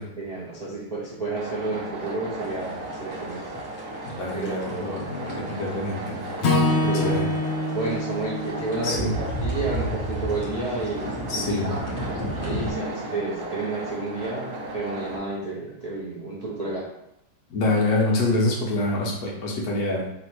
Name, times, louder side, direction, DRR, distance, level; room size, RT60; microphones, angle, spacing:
voice 1, 0.0-3.5 4.3-5.0 6.7-7.3 7.7-11.8 12.4-16.9, right 3 dB, 75° right, -7 dB, 0.3 m, -31 dB
sound 1, 1.3-15.2, right 2 dB, 55° right, 1.0 m, -36 dB
sound 2, 2.4-12.7, right 1 dB, 35° left, 1.2 m, -33 dB
voice 2, 4.0-6.2 6.9-7.3 8.8-9.1 11.3-11.7 17.5-20.0, left 2 dB, 65° left, -2 dB, 1.3 m, -26 dB
Acoustic guitar / Strum, 6.4-10.7, left 2 dB, 80° left, 0.6 m, -26 dB
3.6 x 2.6 x 4.5 m, 0.85 s
omnidirectional pair, 1.9 m